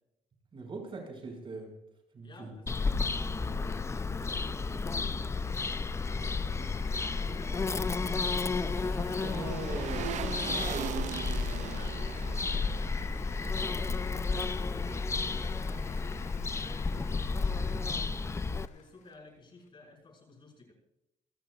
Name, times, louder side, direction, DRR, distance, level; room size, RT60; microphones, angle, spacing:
voice 1, 0.5-1.7 2.1-2.5 9.2-10.1 10.5-11.1, right 3 dB, 45° right, 2 dB, 6.1 m, -40 dB
voice 2, 2.2-5.2 5.8-9.4 11.6-14.9 15.3-20.7, left 3 dB, 40° left, 0 dB, 5.8 m, -54 dB
Bird vocalization bird call bird song, 2.7-18.7, left 4 dB, 20° left, 0.5 m, -32 dB
sound 1, 3.1-19.7, left 9 dB, 75° left, 1.2 m, -54 dB
sound 2, 7.3-14.5 14.8-14.9, right 12 dB, 70° right, 0.4 m, -42 dB
27.5 x 13.5 x 2.5 m, 0.84 s
cardioid pair, 95°, 13 cm